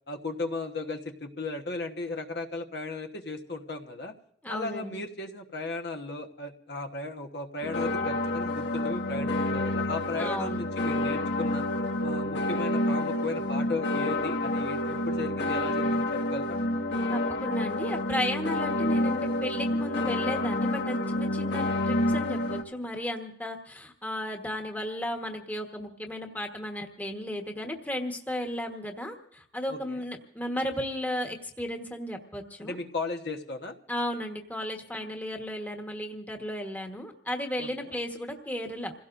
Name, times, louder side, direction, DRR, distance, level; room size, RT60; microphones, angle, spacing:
voice 1, 0.1-4.1 4.5-11.6 12.0-16.6 29.7-30.0 32.6-33.7 37.6-37.9, left 3 dB, 60° left, 3 dB, 1.3 m, -36 dB
voice 2, 4.4-5.0 10.2-10.6 17.1-32.8 33.9-38.9, left 1 dB, 10° left, 2 dB, 1.3 m, -34 dB
sound 1, 7.6-22.6, left 1 dB, 80° left, 1.6 m, -28 dB
27.5 x 17.0 x 2.6 m, 0.68 s
head